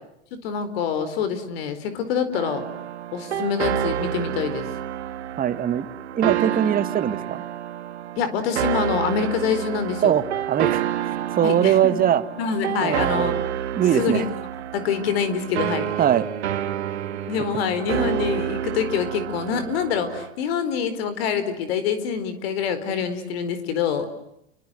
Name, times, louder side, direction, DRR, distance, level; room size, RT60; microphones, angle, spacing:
voice 1, 0.4-2.6 3.1-4.7 8.2-10.1 11.4-12.0 12.4-13.3 13.9-14.2 14.7-15.9 17.1-24.1, left 7 dB, 65° left, 12 dB, 4.5 m, -25 dB
sound 1, 2.3-20.3, right 11 dB, 80° right, 2.3 m, -29 dB
voice 2, 5.4-5.9 6.1-7.4 10.0-12.2 12.8-13.4 13.7-14.3 16.0-16.3, right 10 dB, 25° right, 11 dB, 1.9 m, -21 dB
29.5 x 24.5 x 7.8 m, 0.81 s
hypercardioid pair, 115°, 33 cm